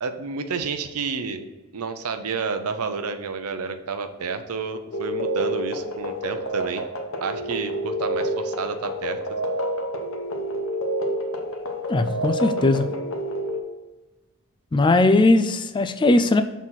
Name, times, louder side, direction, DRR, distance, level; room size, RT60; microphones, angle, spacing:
voice 1, 0.0-1.4 1.7-6.8 7.2-9.4, right 5 dB, 90° right, 8 dB, 0.6 m, -30 dB
sound 1, 4.9-13.6, equal, 65° left, 0.9 m, -28 dB
voice 2, 11.9-12.9 14.7-16.4, left 2 dB, 20° left, 9 dB, 0.3 m, -19 dB
6.2 x 4.0 x 5.7 m, 1.1 s
head